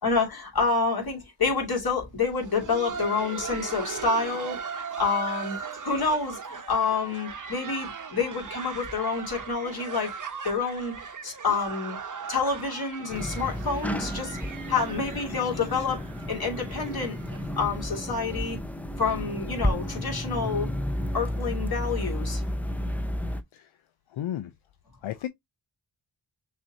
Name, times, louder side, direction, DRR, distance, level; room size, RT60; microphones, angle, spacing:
voice 1, 0.0-4.6 5.0-5.6 5.8-10.1 10.4-12.0 12.3-14.4 14.7-17.2 17.6-18.6 19.0-20.7 21.1-22.4, left 4 dB, 50° left, 2.5 m, -28 dB
Laughter, 2.2-17.9 18.2-18.3 18.8-19.0 19.5-19.7 20.8-20.9, right 6 dB, 40° right, 0.9 m, -38 dB
sound 1, 13.1-23.4, equal, 5° left, 0.5 m, -32 dB
voice 2, 24.1-24.5 25.0-25.3, left 11 dB, 80° left, 0.6 m, -33 dB
6.1 x 2.7 x 2.8 m
cardioid pair, 75°, 48 cm